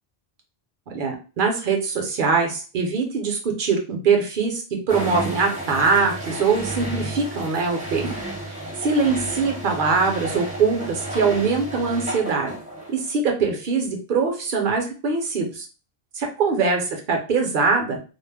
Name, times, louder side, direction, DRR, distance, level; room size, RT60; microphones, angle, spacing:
voice 1, 0.9-8.1 8.5-12.6 12.9-15.7 16.1-18.0, right 4 dB, 60° right, 2 dB, 0.8 m, -22 dB
sound 1, 4.9-13.1, right 1 dB, 10° right, 0.6 m, -32 dB
2.3 x 2.0 x 3.3 m, 0.36 s
omnidirectional pair, 1.1 m